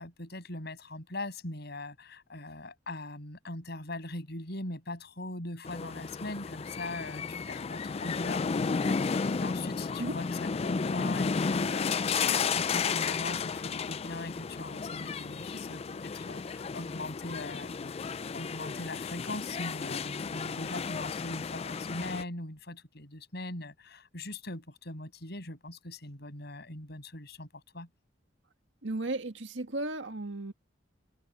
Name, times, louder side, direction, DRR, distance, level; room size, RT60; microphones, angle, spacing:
voice 1, 0.0-27.5 27.7-27.9, left 2 dB, 60° left, 7.0 m, -41 dB
sound 1, 5.6-22.2, left 5 dB, 30° left, 0.4 m, -33 dB
voice 2, 28.8-30.5, right 2 dB, 70° right, 1.8 m, -34 dB
head